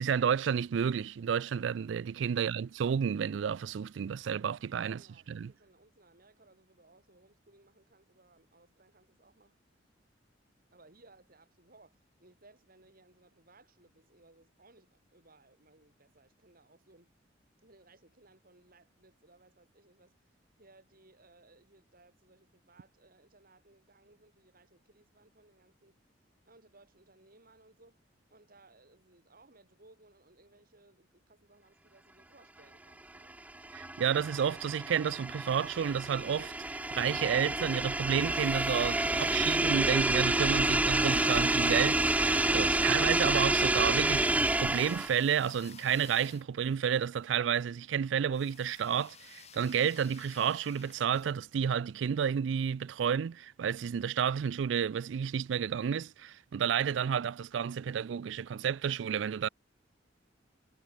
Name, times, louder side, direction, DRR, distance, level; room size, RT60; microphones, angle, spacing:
voice 1, 0.0-5.5 33.7-44.3 44.5-59.5, right 7 dB, 70° right, 0.4 m, -31 dB
voice 2, 4.9-9.6 10.7-17.1 17.6-26.0 26.4-28.0 28.3-33.7, right 2 dB, 50° right, 5.0 m, -62 dB
sound 1, 33.3-45.2, right 2 dB, 10° right, 0.4 m, -29 dB
sound 2, 38.1-40.0 40.8-47.2 48.3-51.3, left 7 dB, 35° left, 2.6 m, -54 dB
head